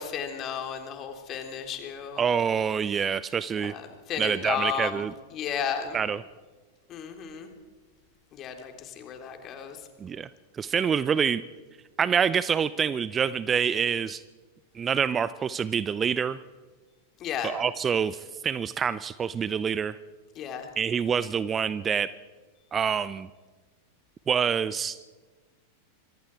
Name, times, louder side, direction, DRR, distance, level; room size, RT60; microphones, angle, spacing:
voice 1, 0.0-2.2 3.6-5.0 5.3-6.0 6.9-7.5 8.3-9.8 17.2-17.5 20.4-20.7, left 7 dB, 30° left, 5 dB, 3.4 m, -33 dB
voice 2, 2.2-3.7 4.2-5.1 5.9-6.2 10.0-10.3 10.5-11.4 12.0-14.2 14.7-16.4 17.4-20.0 20.8-22.1 22.7-23.3 24.3-25.0, right 7 dB, 20° right, 17 dB, 0.6 m, -26 dB
26.0 x 24.0 x 4.7 m, 1.3 s
figure-of-eight pair, 90°, 0 cm